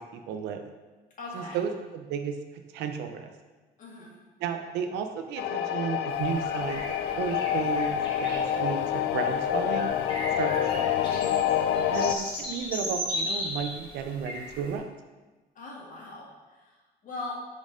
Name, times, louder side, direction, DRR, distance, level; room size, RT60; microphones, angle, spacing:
voice 1, 0.1-0.6 1.3-3.3 4.4-7.9 8.2-9.9 10.4-10.9 11.9-14.8, right 7 dB, 90° right, 6 dB, 0.6 m, -33 dB
voice 2, 1.2-1.6 3.8-4.1 15.6-16.3 16.5-16.7 17.0-17.3, left 3 dB, 50° left, -3 dB, 1.8 m, -39 dB
sound 1, 5.4-12.1, left 10 dB, 80° left, 0.4 m, -27 dB
sound 2, 6.1-14.7, left 1 dB, 30° left, 1.8 m, -37 dB
5.3 x 4.0 x 5.0 m, 1.3 s
cardioid pair, 110°, 17 cm